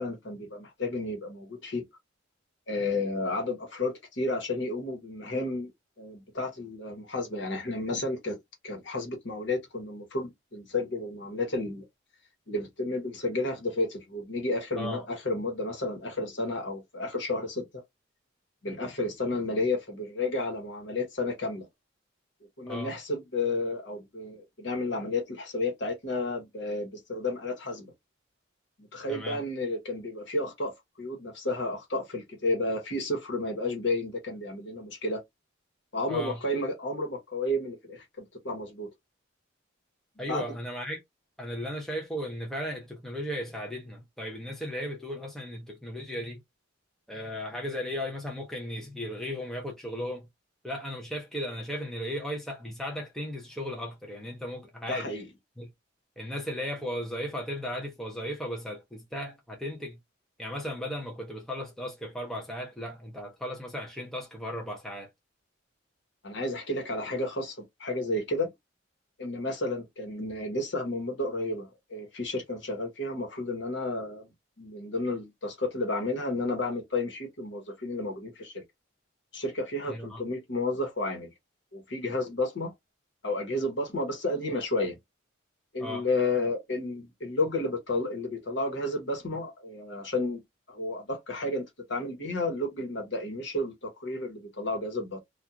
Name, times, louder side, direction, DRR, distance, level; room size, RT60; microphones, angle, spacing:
voice 1, 0.0-1.8 2.7-5.7 6.0-8.4 8.6-11.8 12.5-17.8 18.6-21.7 22.6-27.9 28.9-30.7 31.0-35.2 35.9-38.9 40.3-40.5 54.9-55.3 66.2-68.5 69.2-74.3 74.6-78.6 79.3-81.3 81.7-82.7 83.2-85.0 85.7-90.4 90.7-91.6 91.9-95.2, left 2 dB, 60° left, 1.1 m, -32 dB
voice 2, 29.1-29.4 36.1-36.4 40.2-41.0 41.4-46.4 47.1-50.3 50.6-55.2 55.6-55.7 56.2-60.0 60.4-65.1 79.9-80.2 85.8-86.0, equal, ahead, 0.6 m, -36 dB
2.4 x 2.4 x 2.8 m
head